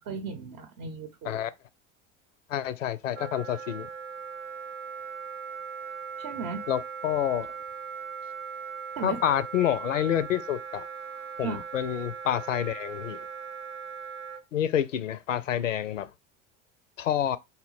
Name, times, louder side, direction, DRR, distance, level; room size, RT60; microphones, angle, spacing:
voice 1, 0.1-1.4 6.2-6.7 9.0-9.2 11.4-11.6, right 5 dB, 45° right, 0.7 m, -36 dB
voice 2, 2.5-3.9 6.7-7.5 9.0-10.9 11.4-13.2 14.5-16.1 17.0-17.4, left 10 dB, 80° left, 0.5 m, -28 dB
Wind instrument woodwind instrument, 3.1-14.4, right 6 dB, 85° right, 0.5 m, -39 dB
4.0 x 2.2 x 3.9 m
figure-of-eight pair, 70°, 37 cm